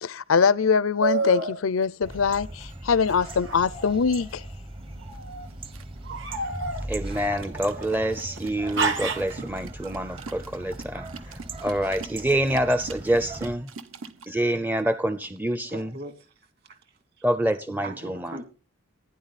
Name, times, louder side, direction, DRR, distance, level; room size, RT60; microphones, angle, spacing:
voice 1, 0.0-4.4, left 5 dB, 85° left, 0.5 m, -23 dB
sound 1, 1.0-1.6 3.1-4.3 5.0-5.5 6.1-8.2 8.8-9.4, right 3 dB, 65° right, 2.3 m, -30 dB
sound 2, 2.0-13.6, right 1 dB, 25° right, 0.9 m, -40 dB
sound 3, 4.8-14.3, right 4 dB, 85° right, 1.3 m, -44 dB
voice 2, 6.9-13.7 14.3-15.9 17.2-18.4, right 1 dB, 10° right, 0.5 m, -27 dB
voice 3, 15.7-17.2 17.8-18.4, right 1 dB, 50° right, 2.4 m, -41 dB
15.5 x 10.5 x 4.1 m
head